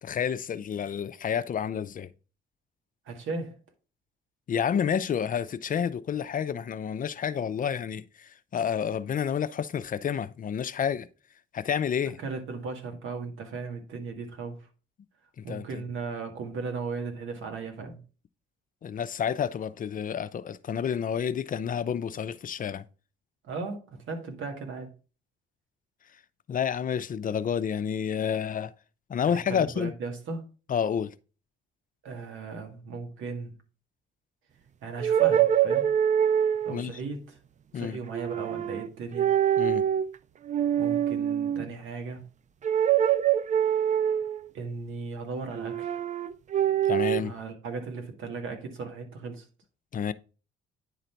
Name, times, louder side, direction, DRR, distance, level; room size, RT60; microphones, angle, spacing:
voice 1, 0.0-2.1 4.5-11.1 11.5-12.2 15.4-15.7 18.8-22.8 26.5-28.7 29.1-29.9 30.7-31.1 36.7-36.9 37.7-38.0 39.6-39.9 46.8-47.3 49.9-50.1, left 8 dB, 45° left, 0.5 m, -29 dB
voice 2, 3.0-3.6 12.1-14.7 15.4-18.0 23.4-24.9 29.3-30.4 32.0-33.6 34.8-35.8 36.6-37.4 37.7-39.4 40.8-42.2 44.5-46.0 47.2-49.5, right 4 dB, 80° right, 1.9 m, -37 dB
sound 1, 35.0-36.8 38.1-38.9 39.1-40.1 40.5-41.7 42.6-44.5 45.5-47.2, right 10 dB, 35° right, 0.4 m, -24 dB
10.0 x 4.0 x 4.4 m
cardioid pair, 90°, 20 cm